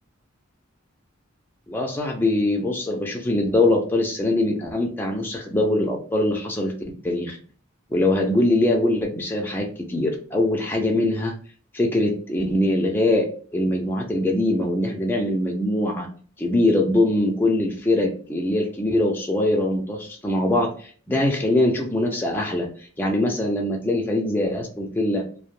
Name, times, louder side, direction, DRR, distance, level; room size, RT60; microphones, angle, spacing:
voice 1, 1.7-6.7 7.0-7.4 7.9-11.3 11.7-13.3 13.5-16.1 16.4-22.7 23.0-25.2, left 1 dB, 10° left, 0 dB, 0.3 m, -22 dB
2.1 x 2.1 x 3.0 m, 0.44 s
head